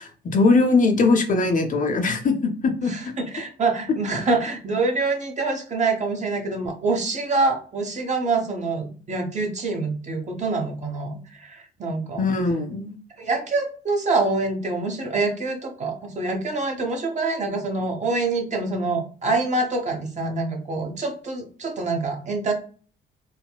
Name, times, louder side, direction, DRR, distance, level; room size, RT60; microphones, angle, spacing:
voice 1, 0.0-3.1 12.2-12.9, left 3 dB, 40° left, 5 dB, 0.6 m, -21 dB
voice 2, 2.9-12.2 13.2-22.5, right 3 dB, 35° right, 2 dB, 0.9 m, -25 dB
4.1 x 2.1 x 2.2 m, 0.41 s
cardioid pair, 90°, 20 cm